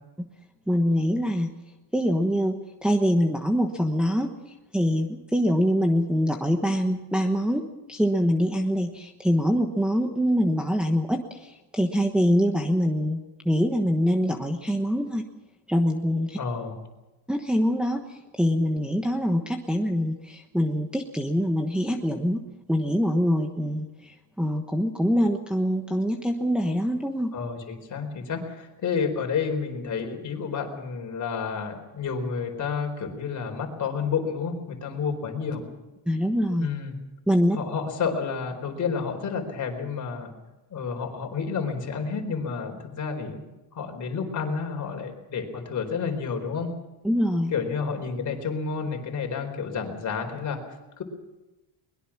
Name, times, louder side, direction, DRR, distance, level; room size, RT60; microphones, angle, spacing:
voice 1, 0.7-1.5 1.9-4.3 4.7-7.6 7.9-15.2 15.7-16.4 17.3-22.4 22.7-27.3 36.1-36.7 37.3-37.6 47.0-47.5, equal, ahead, 1 dB, 1.2 m, -24 dB
voice 2, 16.4-16.8 27.3-35.6 36.6-37.0 37.5-40.3 40.7-43.4 43.7-46.7 47.5-50.6 51.0-51.1, left 5 dB, 40° left, 4 dB, 4.4 m, -30 dB
22.5 x 21.5 x 6.1 m, 1.0 s
cardioid pair, 165°, 47 cm